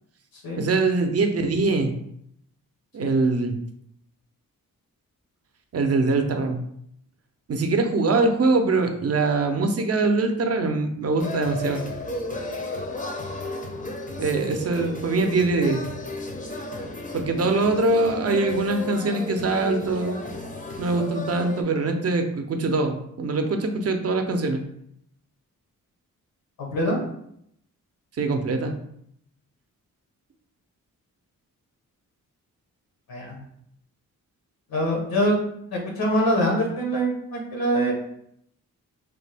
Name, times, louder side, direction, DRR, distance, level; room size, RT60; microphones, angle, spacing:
voice 1, 0.6-1.9 2.9-3.6 5.7-6.6 7.5-11.8 14.2-15.8 17.1-20.2 20.8-24.6 28.2-28.8, right 3 dB, 45° right, 5 dB, 0.5 m, -23 dB
sound 1, 11.2-21.6, left 2 dB, 25° left, 0.5 m, -33 dB
voice 2, 26.6-27.0 33.1-33.3 34.7-35.4 35.7-37.9, equal, 80° left, -1 dB, 1.0 m, -24 dB
3.3 x 2.1 x 3.3 m, 0.73 s
cardioid pair, 70°, 35 cm